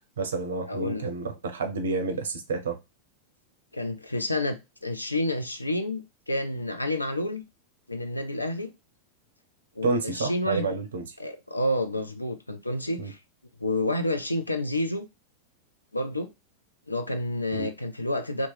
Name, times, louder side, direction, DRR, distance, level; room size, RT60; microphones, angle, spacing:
voice 1, 0.2-2.8 9.8-11.0 13.0-13.1 17.5-17.7, right 3 dB, 65° right, 0.6 m, -29 dB
voice 2, 0.7-1.1 3.7-7.4 7.9-8.7 9.8-10.8 11.2-13.2 13.6-15.1 15.9-16.3 16.9-18.5, left 1 dB, 85° left, 0.4 m, -29 dB
2.8 x 2.1 x 3.0 m
figure-of-eight pair, 90°, 0 cm